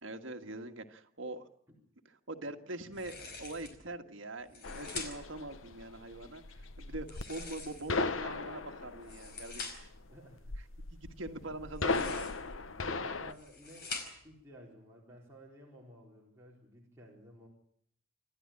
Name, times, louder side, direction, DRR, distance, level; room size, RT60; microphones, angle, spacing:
voice 1, 0.0-1.5 2.3-9.7 10.9-12.5, right 2 dB, 70° right, 5 dB, 1.8 m, -43 dB
sound 1, 2.9-3.8 4.4-5.4 7.0-8.1 8.9-10.0 11.7-12.5 13.1-14.4, left 4 dB, 55° left, 4.7 m, -45 dB
sound 2, 4.6-13.3, left 3 dB, 80° left, 1.0 m, -37 dB
voice 2, 10.1-10.7 12.8-17.5, right 1 dB, 15° right, -4 dB, 4.3 m, -54 dB
27.5 x 12.0 x 8.8 m, 0.68 s
head